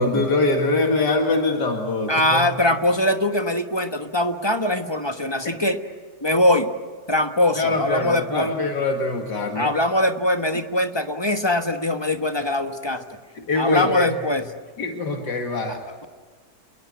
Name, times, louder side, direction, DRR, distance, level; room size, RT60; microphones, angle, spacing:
voice 1, 0.0-2.5 7.5-9.7 13.4-14.1 14.8-15.8, left 2 dB, 70° left, 3 dB, 2.5 m, -23 dB
voice 2, 2.1-5.8 6.2-6.7 7.1-8.5 9.6-13.0 13.6-14.4 15.7-15.8, left 1 dB, 15° left, 7 dB, 1.1 m, -22 dB
28.5 x 20.5 x 9.7 m, 1.5 s
omnidirectional pair, 1.9 m